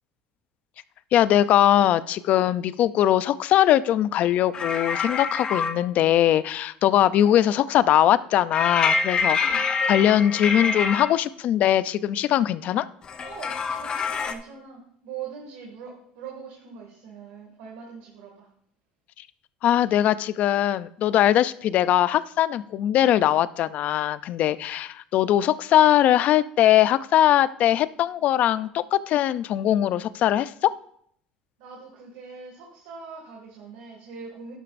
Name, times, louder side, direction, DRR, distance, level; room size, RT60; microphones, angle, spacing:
voice 1, 1.1-9.6 9.9-12.9 19.6-30.7, left 12 dB, 50° left, 15 dB, 0.5 m, -21 dB
sound 1, 4.5-5.8 8.5-11.1 13.0-14.3, left 4 dB, 30° left, 0.8 m, -26 dB
voice 2, 9.3-9.7 13.2-18.5 31.6-34.5, right 5 dB, 85° right, -1 dB, 2.2 m, -42 dB
11.5 x 11.0 x 2.6 m, 0.68 s
cardioid pair, 130°, 3 cm